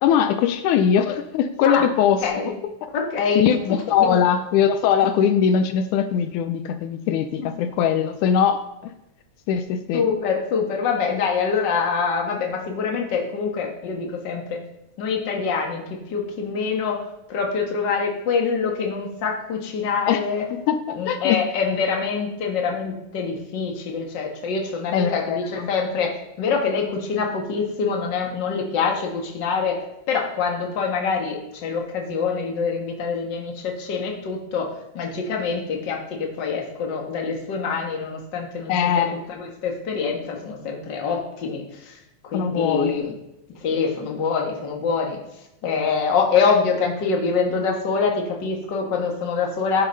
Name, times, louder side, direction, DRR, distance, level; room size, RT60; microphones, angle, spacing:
voice 1, 0.0-2.2 2.6-2.7 3.4-8.9 9.5-10.1 20.1-20.2 20.5-21.4 24.9-25.7 38.7-39.2 42.3-43.0, left 8 dB, 80° left, 9 dB, 2.0 m, -21 dB
voice 2, 2.2-2.5 2.9-3.4 4.0-4.2 7.4-7.5 9.9-14.6 15.0-17.0 17.3-20.5 20.9-38.7 39.0-42.0 42.2-43.1 43.6-45.2 45.6-49.9, left 5 dB, 45° left, 1 dB, 1.7 m, -25 dB
10.0 x 6.9 x 5.5 m, 0.88 s
omnidirectional pair, 3.6 m